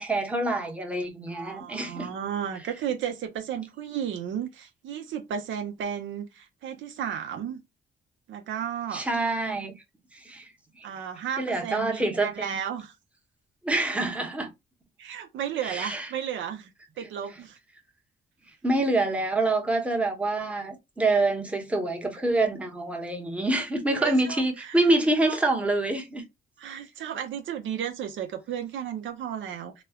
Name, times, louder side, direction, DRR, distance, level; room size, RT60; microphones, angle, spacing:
voice 1, 0.0-2.1 8.9-9.7 10.1-10.5 10.8-10.9 11.4-12.6 13.6-14.5 15.6-16.1 18.6-26.2, right 2 dB, 5° right, 0.8 m, -26 dB
voice 2, 1.3-7.6 8.3-9.0 10.8-12.9 15.0-16.7 17.0-17.6 23.9-24.8 25.3-25.4 26.6-29.8, right 9 dB, 75° right, 0.6 m, -34 dB
3.1 x 2.0 x 2.3 m
cardioid pair, 90°, 20 cm